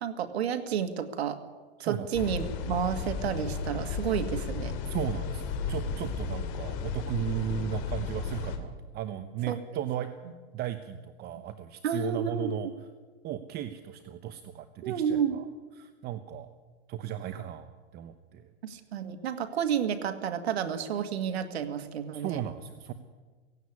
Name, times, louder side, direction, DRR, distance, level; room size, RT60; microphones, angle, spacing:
voice 1, 0.0-1.4 1.8-4.7 9.5-9.6 11.8-12.5 14.8-15.4 18.6-22.4, right 8 dB, 85° right, 7 dB, 1.9 m, -31 dB
voice 2, 1.8-2.2 4.9-10.1 10.5-12.7 13.2-15.5 15.8-16.5 16.9-18.5 22.1-22.9, right 10 dB, 30° right, 10 dB, 1.0 m, -36 dB
sound 1, 2.1-8.6, left 5 dB, 50° left, 2.9 m, -34 dB
17.0 x 16.0 x 9.8 m, 1.4 s
supercardioid pair, 140°, 31 cm